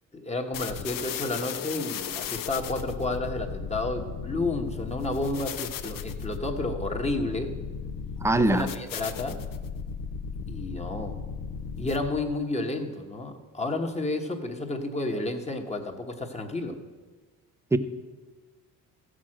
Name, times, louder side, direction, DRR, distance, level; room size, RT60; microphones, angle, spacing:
voice 1, 0.1-7.5 8.4-9.4 10.5-11.2 11.8-16.8, left 2 dB, 20° left, 4 dB, 1.2 m, -31 dB
sound 1, 0.5-12.3, left 6 dB, 60° left, 0.8 m, -36 dB
voice 2, 8.2-8.7 17.7-17.8, right 2 dB, 5° right, 11 dB, 0.6 m, -21 dB
15.0 x 6.3 x 7.6 m, 1.4 s
cardioid pair, 125°, 37 cm